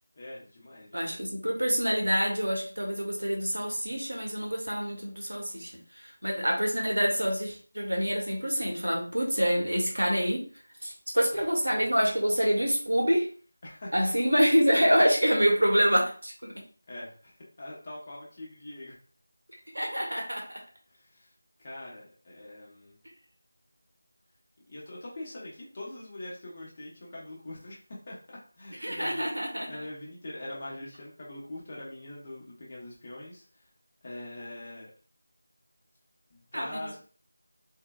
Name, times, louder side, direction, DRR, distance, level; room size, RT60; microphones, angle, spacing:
voice 1, 0.1-1.2 13.6-14.1 16.9-19.0 20.9-21.3 21.6-23.0 24.7-29.3 29.7-33.7 34.0-34.9 36.3-37.0, left 1 dB, 25° left, -5 dB, 0.9 m, -43 dB
voice 2, 0.9-5.7 6.0-10.4 10.8-13.3 13.9-16.5 19.7-20.6 28.8-29.7 36.5-37.0, equal, 75° right, 0 dB, 1.1 m, -26 dB
3.7 x 2.2 x 2.3 m, 0.40 s
figure-of-eight pair, 165°, 0 cm